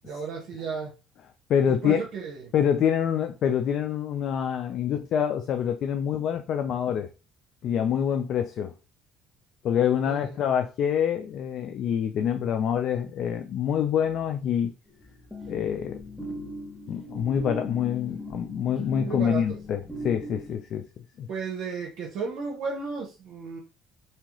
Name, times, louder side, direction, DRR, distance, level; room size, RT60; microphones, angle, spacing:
voice 1, 0.0-0.9 1.7-2.4 10.0-10.2 19.0-19.6 21.3-23.6, right 5 dB, 65° right, 0.7 m, -34 dB
voice 2, 1.5-2.0 2.5-7.1 7.6-8.7 9.6-14.7 15.5-16.3 16.9-20.9 21.2-21.3, left 8 dB, 55° left, 0.3 m, -26 dB
sound 1, 14.9-20.6, left 1 dB, 10° left, 0.7 m, -39 dB
2.8 x 2.3 x 2.9 m
cardioid pair, 105°, 0 cm